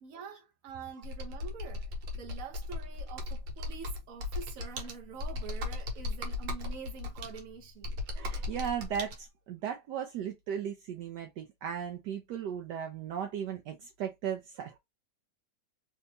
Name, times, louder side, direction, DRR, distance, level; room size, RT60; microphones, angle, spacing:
voice 1, 0.0-8.0, right 6 dB, 55° right, 1.2 m, -46 dB
Computer keyboard, 1.0-9.2, left 2 dB, 90° right, 1.6 m, -37 dB
voice 2, 8.1-14.8, right 8 dB, 75° right, 1.1 m, -36 dB
3.4 x 2.8 x 2.6 m
omnidirectional pair, 2.0 m